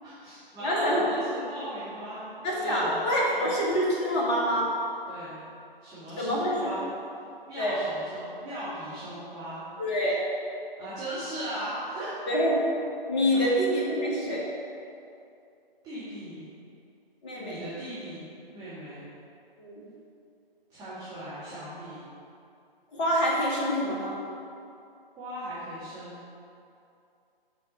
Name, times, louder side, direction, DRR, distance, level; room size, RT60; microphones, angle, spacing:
voice 1, 0.0-2.2 2.6-3.5 5.1-5.4 5.8-6.8 7.5-9.6 10.8-12.1 13.3-13.5 15.8-16.5 17.4-18.2 18.5-19.0 20.7-22.1 25.2-26.2, right 1 dB, 15° right, -13 dB, 1.8 m, -38 dB
voice 2, 0.6-1.0 2.4-4.7 6.2-6.7 7.6-7.8 9.8-10.2 12.3-12.6 13.1-14.4 17.2-17.6 19.6-19.8 22.9-24.2, equal, 30° left, -4 dB, 1.8 m, -26 dB
7.4 x 5.7 x 5.3 m, 2.6 s
figure-of-eight pair, 135°, 30 cm